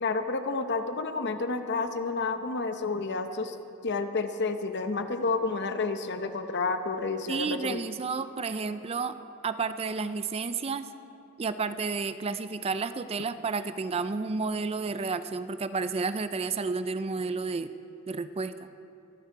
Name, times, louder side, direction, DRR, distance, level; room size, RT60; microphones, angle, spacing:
voice 1, 0.0-3.6 3.8-7.8, left 3 dB, 50° left, 8 dB, 0.9 m, -30 dB
voice 2, 7.3-9.2 9.4-10.9 11.4-17.7 18.1-18.5, right 4 dB, 25° right, 12 dB, 0.4 m, -31 dB
24.0 x 10.5 x 4.7 m, 2.7 s
head